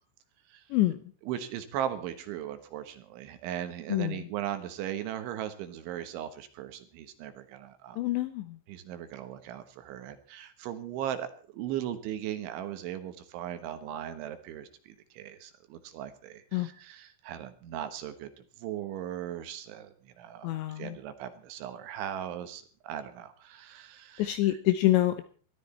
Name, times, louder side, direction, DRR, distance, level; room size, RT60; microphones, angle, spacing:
voice 1, 1.3-8.0 8.7-18.3 18.6-24.6, right 11 dB, 75° right, 10 dB, 3.4 m, -38 dB
voice 2, 3.9-4.3 8.0-8.6 16.5-16.7 20.4-21.0 24.2-25.2, left 15 dB, 80° left, 11 dB, 2.7 m, -26 dB
20.0 x 13.0 x 4.3 m, 0.40 s
omnidirectional pair, 6.0 m